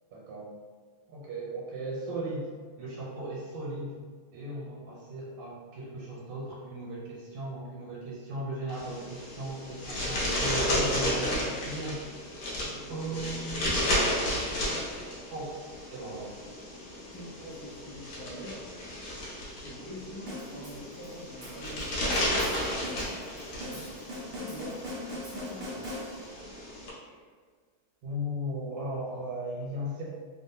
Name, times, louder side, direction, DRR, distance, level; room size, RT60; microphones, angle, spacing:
voice 1, 0.1-0.6 1.1-2.5 2.8-4.0 4.3-12.3 12.9-13.8 15.3-15.5 15.9-16.3 23.5-23.9 27.1-27.2 28.0-30.0, right 1 dB, 85° right, -5 dB, 1.7 m, -37 dB
sound 1, 8.7-26.9, left 1 dB, 65° left, 1.1 m, -33 dB
voice 2, 12.6-15.0 17.1-18.7 19.6-22.2 22.8-23.2 24.3-26.0, equal, 45° left, -11 dB, 1.2 m, -45 dB
sound 2, 20.3-26.5, equal, 50° right, 0.7 m, -41 dB
3.6 x 2.1 x 2.6 m, 1.6 s
omnidirectional pair, 2.4 m